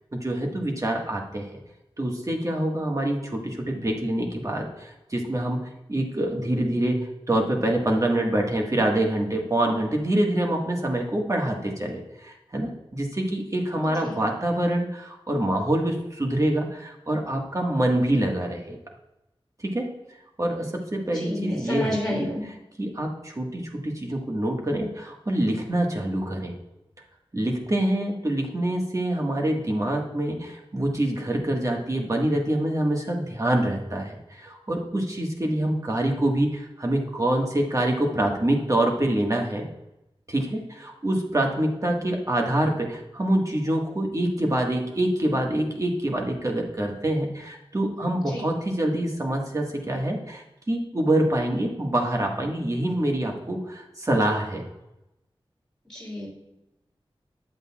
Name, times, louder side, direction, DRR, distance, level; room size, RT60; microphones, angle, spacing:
voice 1, 0.1-1.5 2.0-5.6 5.9-18.8 19.6-19.9 20.4-22.3 22.8-26.5 27.3-39.7 40.3-54.7, right 1 dB, 35° right, 1 dB, 1.6 m, -26 dB
voice 2, 13.8-14.2 21.0-22.4 48.2-48.5 55.9-56.3, equal, 5° left, -7 dB, 3.0 m, -30 dB
9.4 x 7.9 x 2.4 m, 0.91 s
wide cardioid pair, 65°, 10 cm